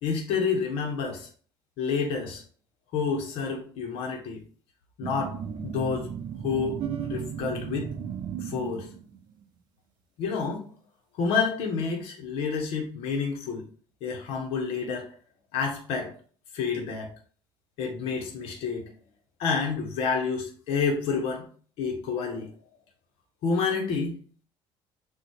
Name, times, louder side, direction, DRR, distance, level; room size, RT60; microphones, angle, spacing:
voice 1, 0.0-1.3 1.8-2.4 2.9-4.4 5.0-6.1 6.4-7.9 8.4-8.9 10.2-10.7 11.1-13.6 14.0-15.1 15.5-16.1 16.5-17.1 17.8-18.9 19.4-21.5 21.8-22.5 23.4-24.2, left 5 dB, 75° left, 1 dB, 1.6 m, -29 dB
sound 1, 5.0-9.2, right 8 dB, 50° right, 0.8 m, -35 dB
7.3 x 3.0 x 4.8 m, 0.44 s
cardioid pair, 155°, 10 cm